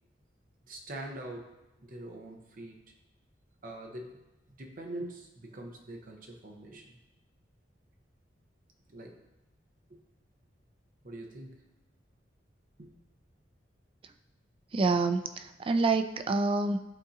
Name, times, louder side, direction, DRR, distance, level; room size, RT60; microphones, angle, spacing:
voice 1, 0.6-2.8 3.6-4.2 4.6-7.0 8.9-9.2 9.9-10.0 11.0-11.6 12.8-12.9, right 1 dB, 50° right, 2 dB, 0.9 m, -44 dB
voice 2, 14.7-16.8, right 3 dB, 30° right, 8 dB, 0.3 m, -27 dB
11.0 x 3.8 x 2.7 m, 0.99 s
head